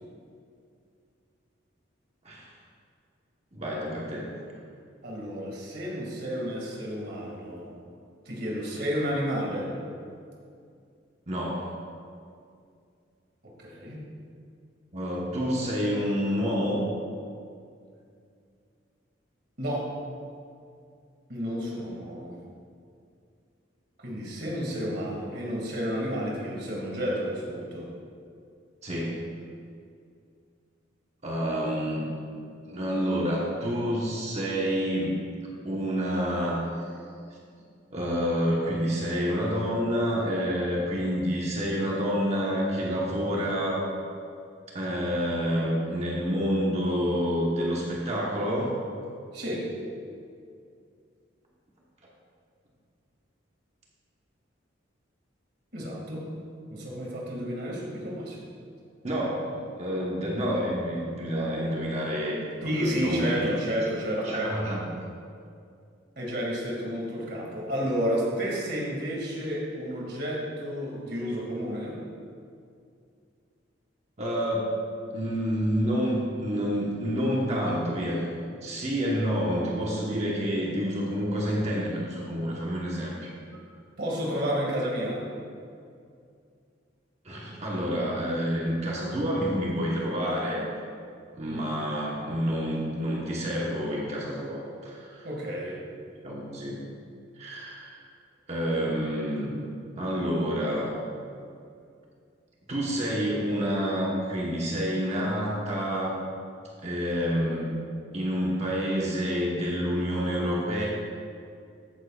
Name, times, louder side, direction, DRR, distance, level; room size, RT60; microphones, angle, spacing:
voice 1, 3.5-4.3 11.3-11.7 14.9-16.8 28.8-29.2 31.2-32.0 32.6-35.2 35.6-36.9 37.9-43.9 44.7-48.7 59.0-63.5 64.2-64.9 74.2-74.7 75.1-78.2 78.6-83.6 87.2-90.6 91.3-95.3 96.2-96.8 97.4-98.0 98.5-99.6 100.0-100.9 102.7-106.2 106.8-107.7 108.1-110.9, equal, 35° right, -4 dB, 1.2 m, -28 dB
voice 2, 5.0-7.7 8.3-9.7 13.4-14.1 19.6-19.9 21.3-22.4 24.0-27.9 49.3-49.7 55.7-56.3 56.7-58.4 62.6-64.5 66.2-72.0 84.0-85.3 91.4-91.7 95.2-95.8, equal, 55° right, -3 dB, 2.2 m, -31 dB
13.5 x 9.4 x 2.4 m, 2.4 s
head